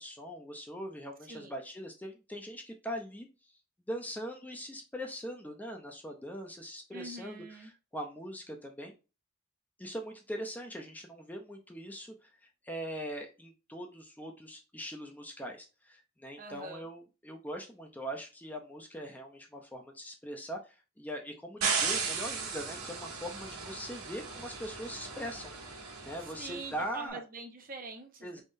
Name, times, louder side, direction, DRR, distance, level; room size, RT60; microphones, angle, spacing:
voice 1, 0.0-3.3 3.9-8.9 9.8-12.3 12.6-25.7 26.0-27.2 28.2-28.4, equal, 10° left, 0.5 m, -41 dB
voice 2, 6.9-7.7 16.4-16.8 26.4-28.4, right 3 dB, 40° right, 0.8 m, -44 dB
sound 1, 21.6-26.7, right 5 dB, 80° right, 1.4 m, -36 dB
4.4 x 3.6 x 2.6 m
head